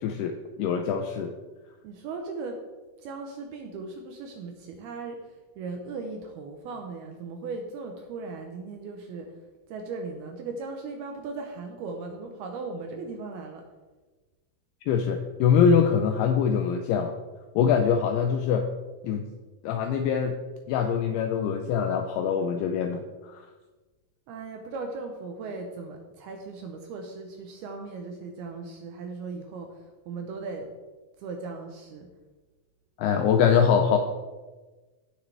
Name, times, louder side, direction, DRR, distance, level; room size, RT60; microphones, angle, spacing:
voice 1, 0.0-1.3 14.9-17.2 17.6-18.7 19.0-19.2 19.6-20.4 20.7-23.5 33.0-34.0, left 7 dB, 85° left, 5 dB, 2.3 m, -23 dB
voice 2, 1.8-2.6 3.0-5.2 5.6-9.3 9.7-13.6 24.3-29.7 30.1-30.7 31.2-32.1, right 4 dB, 75° right, 3 dB, 2.4 m, -37 dB
16.0 x 6.4 x 3.4 m, 1.3 s
omnidirectional pair, 5.2 m